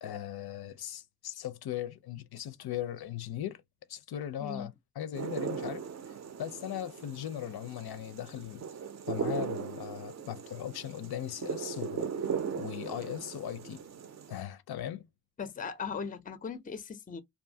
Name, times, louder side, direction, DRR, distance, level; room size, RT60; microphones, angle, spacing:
voice 1, 0.0-3.6 3.9-5.8 6.4-8.6 9.1-12.1 12.6-13.8 14.3-15.1, left 11 dB, 85° left, 0.5 m, -38 dB
sound 1, 5.2-14.4, right 6 dB, 50° right, 0.4 m, -38 dB
voice 2, 15.4-17.2, left 6 dB, 25° left, 0.4 m, -38 dB
2.6 x 2.4 x 2.6 m
wide cardioid pair, 135°, 37 cm